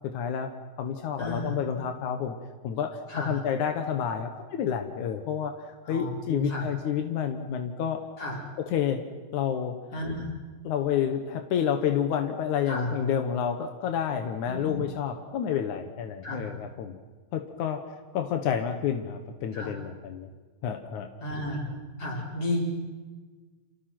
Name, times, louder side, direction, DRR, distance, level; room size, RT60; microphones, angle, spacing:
voice 1, 0.0-0.5 0.8-2.4 2.6-5.5 5.9-8.0 8.6-9.0 9.3-9.8 10.6-17.0 17.3-17.8 18.1-20.3 20.6-21.1, left 8 dB, 65° left, 6 dB, 2.0 m, -29 dB
voice 2, 1.2-1.5 3.1-3.4 5.9-6.7 8.2-8.4 9.9-10.3 12.7-12.9 14.5-14.8 16.2-16.5 19.5-19.7 21.2-21.7 22.0-22.6, left 1 dB, 30° left, -1 dB, 6.0 m, -32 dB
30.0 x 28.5 x 6.1 m, 1.4 s
omnidirectional pair, 5.2 m